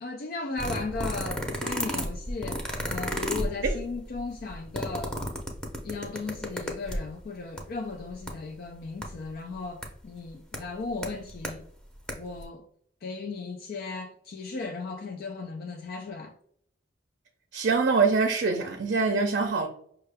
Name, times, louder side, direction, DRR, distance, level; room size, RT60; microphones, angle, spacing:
voice 1, 0.0-5.2 5.8-11.6 12.2-12.7 13.0-16.3, left 3 dB, 55° left, 0.4 m, -36 dB
sound 1, 0.6-7.2 7.6-7.7 7.9-8.3 9.0-9.1 9.8-9.9 10.5-10.6 11.0-11.5 11.9-12.1 12.4-12.5, equal, 5° left, 0.7 m, -32 dB
voice 2, 17.5-19.7, right 4 dB, 60° right, 0.5 m, -24 dB
5.5 x 2.2 x 3.3 m
head